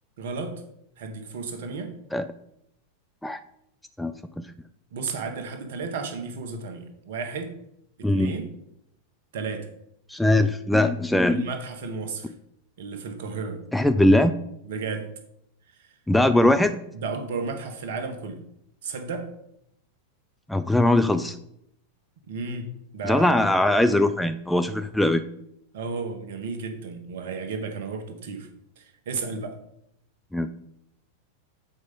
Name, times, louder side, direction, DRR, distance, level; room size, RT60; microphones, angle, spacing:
voice 1, 0.2-0.6 1.0-1.9 4.9-7.5 8.0-8.5 9.3-9.7 11.3-12.3 12.8-13.6 14.7-15.1 15.8-15.9 16.9-18.4 18.8-19.3 22.2-22.7 22.9-23.4 25.7-28.5 28.8-29.5, right 4 dB, 55° right, 7 dB, 1.3 m, -33 dB
voice 2, 4.0-4.5 8.0-8.3 10.1-11.5 13.7-14.4 16.1-16.8 20.5-21.4 23.0-25.2 30.3-30.5, left 1 dB, 5° left, 9 dB, 0.4 m, -21 dB
7.8 x 4.8 x 5.5 m, 0.75 s
figure-of-eight pair, 90°, 0 cm